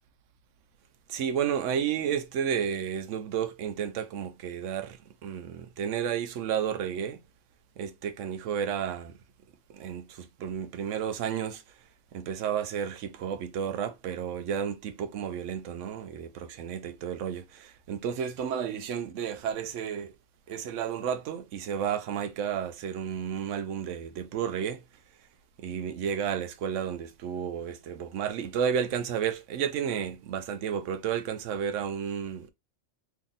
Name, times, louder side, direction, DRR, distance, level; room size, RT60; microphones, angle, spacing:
voice 1, 1.1-7.2 7.8-9.2 9.7-11.8 12.1-20.1 20.5-24.8 25.6-32.5, right 8 dB, 70° right, 0.9 m, -32 dB
2.9 x 2.7 x 3.9 m
omnidirectional pair, 1.4 m